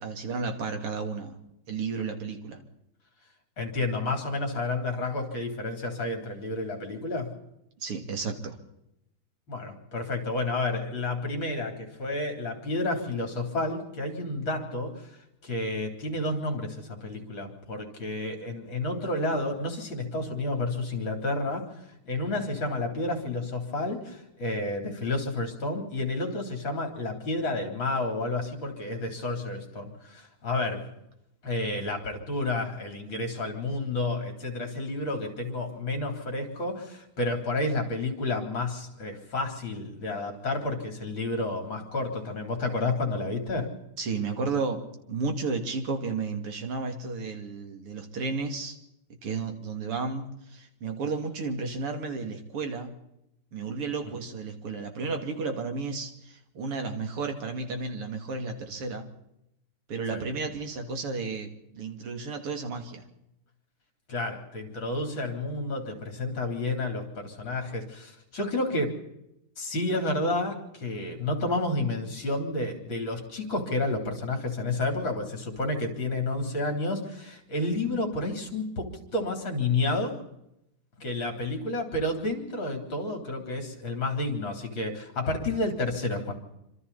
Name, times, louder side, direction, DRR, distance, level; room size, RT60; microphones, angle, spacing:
voice 1, 0.0-1.4 1.7-2.6 7.8-8.6 44.0-48.8 49.2-52.9 53.5-59.1 59.9-63.0, right 4 dB, 90° right, 5 dB, 3.5 m, -33 dB
voice 2, 3.6-7.3 9.5-15.1 15.4-21.7 22.0-30.9 31.4-43.7 54.0-54.1 60.1-60.2 64.1-68.9 69.6-80.2 81.0-86.3, left 2 dB, 60° left, 4 dB, 4.5 m, -30 dB
27.5 x 25.5 x 4.3 m, 0.82 s
omnidirectional pair, 2.4 m